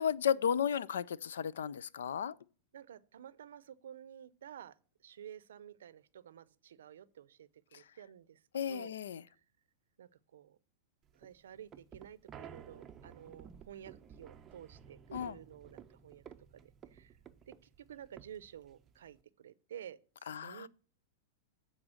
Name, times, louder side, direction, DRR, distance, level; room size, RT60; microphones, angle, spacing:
voice 1, 0.0-2.3 7.7-7.8 8.5-9.2 15.1-15.4 20.3-20.7, left 8 dB, 90° left, 0.4 m, -34 dB
voice 2, 2.7-4.7 5.0-8.4 8.7-8.9 10.0-10.6 11.2-16.2 16.5-16.6 16.9-17.1 17.5-17.6 17.9-20.7, right 9 dB, 85° right, 0.5 m, -52 dB
sound 1, 11.1-19.2, right 8 dB, 20° right, 0.5 m, -54 dB
8.8 x 4.0 x 6.4 m
supercardioid pair, 145°, 0 cm